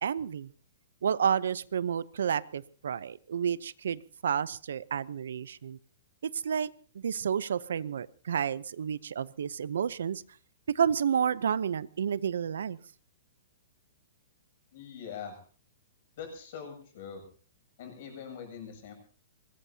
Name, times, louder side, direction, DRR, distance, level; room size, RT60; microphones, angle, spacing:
voice 1, 0.0-0.5 1.0-5.8 6.3-6.7 6.9-10.2 10.7-12.8, right 8 dB, 75° right, 19 dB, 0.7 m, -30 dB
voice 2, 14.7-15.4 16.2-17.2 17.8-18.9, left 7 dB, 40° left, 4 dB, 7.5 m, -43 dB
23.5 x 20.0 x 2.8 m, 0.41 s
hypercardioid pair, 175°, 0 cm